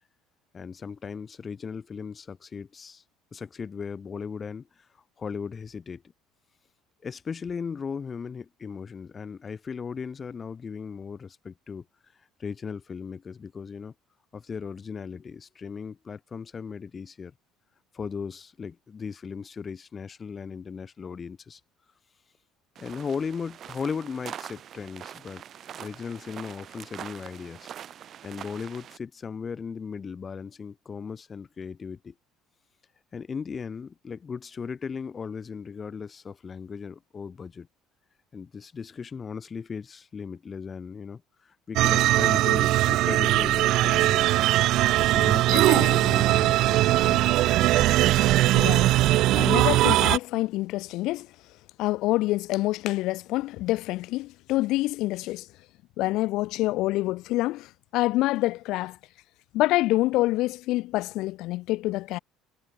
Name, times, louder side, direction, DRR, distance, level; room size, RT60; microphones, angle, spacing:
voice 1, 0.5-3.0 3.3-4.9 5.2-6.0 7.0-11.8 12.4-13.9 14.3-17.3 17.9-21.6 22.8-25.4 25.7-27.7 28.2-32.1 33.1-37.7 38.3-47.3 48.1-48.2, left 6 dB, 25° left, 3.5 m, -37 dB
sound 1, 22.8-29.0, right 9 dB, 35° right, 3.5 m, -43 dB
sound 2, 41.8-50.2, right 16 dB, 55° right, 0.6 m, -20 dB
voice 2, 45.5-46.0 48.5-48.9 49.4-51.3 51.8-55.5 56.0-57.7 57.9-59.0 59.5-62.2, left 18 dB, 60° left, 1.8 m, -26 dB
cardioid pair, 150°, 0 cm